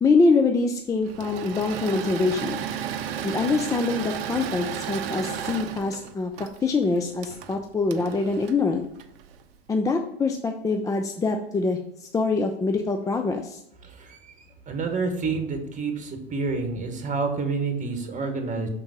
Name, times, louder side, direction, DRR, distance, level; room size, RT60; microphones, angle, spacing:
voice 1, 0.0-2.6 3.2-6.3 6.6-8.8 9.7-13.6, left 3 dB, 10° left, 5 dB, 0.4 m, -24 dB
Engine / Mechanisms, 1.0-9.4, right 9 dB, 65° right, 0.6 m, -34 dB
voice 2, 14.7-15.9 16.3-18.7, right 4 dB, 25° right, 5 dB, 1.3 m, -28 dB
6.0 x 3.7 x 4.8 m, 0.78 s
hypercardioid pair, 90°, 31 cm